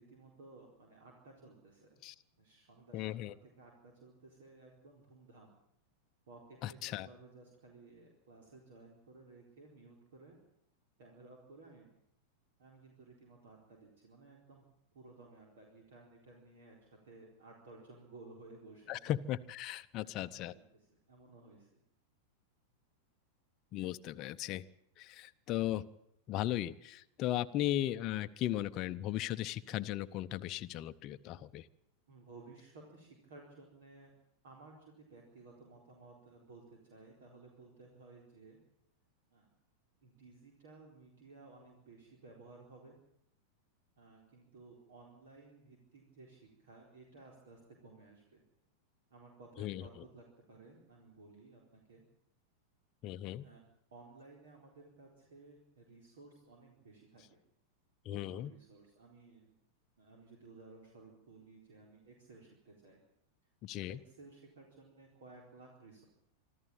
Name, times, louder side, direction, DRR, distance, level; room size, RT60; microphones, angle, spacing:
voice 1, 0.0-2.0 2.4-3.1 3.4-5.5 6.3-10.4 11.0-11.9 12.6-14.6 14.9-19.2 20.0-21.8 32.1-34.1 34.4-38.6 39.3-39.5 40.0-43.0 44.0-48.4 49.1-52.0 53.4-53.6 53.9-57.4 58.1-59.5 60.0-63.0 63.7-66.0, right 3 dB, 60° right, 0 dB, 4.2 m, -57 dB
voice 2, 2.9-3.3 6.6-7.1 18.9-20.5 23.7-24.6 25.0-25.9 26.3-31.7 49.6-49.9 53.0-53.5 58.0-58.5 63.6-64.0, left 13 dB, 35° left, 10 dB, 0.8 m, -37 dB
25.5 x 13.5 x 8.8 m, 0.77 s
figure-of-eight pair, 90°, 0 cm